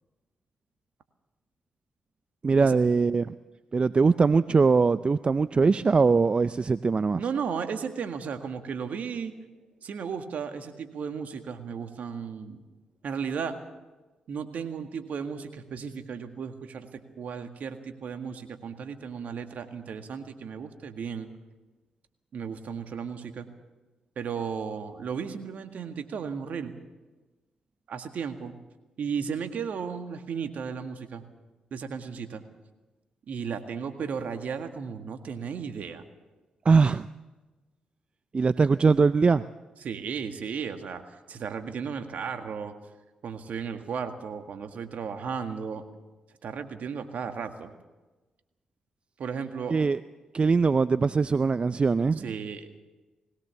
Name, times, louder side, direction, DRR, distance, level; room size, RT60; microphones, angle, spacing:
voice 1, 2.4-3.3 3.7-7.2 36.6-37.1 38.3-39.4 49.7-50.0 50.3-52.3, right 4 dB, 40° right, 15 dB, 0.6 m, -22 dB
voice 2, 7.2-9.3 9.8-12.6 13.0-13.6 14.3-21.3 22.3-23.5 24.2-26.7 27.9-28.5 29.0-31.2 31.7-32.4 33.3-36.0 39.8-42.8 43.2-45.9 46.4-47.7 49.2-49.8 52.2-52.7, right 6 dB, 65° right, 7 dB, 1.9 m, -35 dB
20.5 x 17.5 x 7.1 m, 1.2 s
hypercardioid pair, 40°, 3 cm